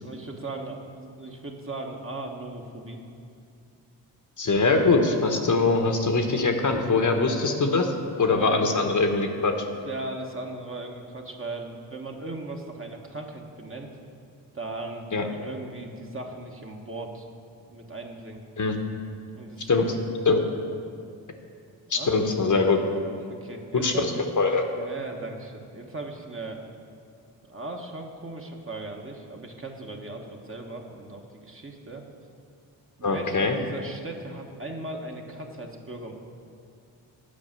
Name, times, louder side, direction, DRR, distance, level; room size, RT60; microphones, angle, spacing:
voice 1, 0.0-3.0 8.3-8.7 9.7-13.9 14.5-17.3 17.7-18.4 19.3-19.9 21.9-22.1 23.2-24.2 24.7-26.6 27.5-32.0 33.0-36.1, right 2 dB, 30° right, 1 dB, 1.2 m, -38 dB
voice 2, 4.4-9.5 15.1-15.2 18.6-18.8 19.7-19.9 20.2-20.4 21.9-22.8 23.8-24.1 24.4-24.6 33.0-33.6, left 3 dB, 45° left, 5 dB, 1.0 m, -22 dB
8.6 x 4.9 x 7.4 m, 2.4 s
supercardioid pair, 45°, 44 cm